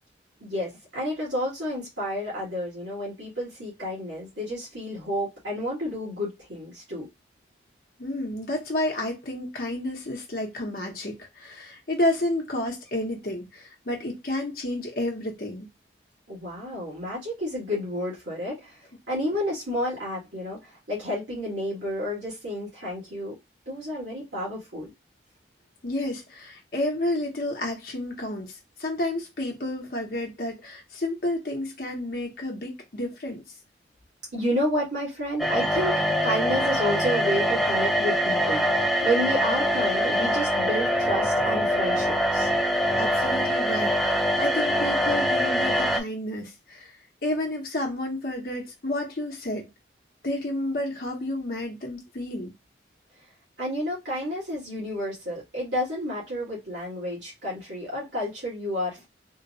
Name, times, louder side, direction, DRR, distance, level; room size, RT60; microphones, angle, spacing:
voice 1, 0.4-7.1 16.3-18.8 19.1-23.4 23.7-24.9 34.3-42.5 53.6-59.1, equal, 85° right, 2.0 m, -30 dB
voice 2, 8.0-15.7 25.8-33.4 43.0-49.7 50.2-52.5, left 1 dB, 50° left, 0.7 m, -31 dB
sound 1, 35.4-46.0, equal, ahead, 0.3 m, -24 dB
3.7 x 2.1 x 2.6 m
head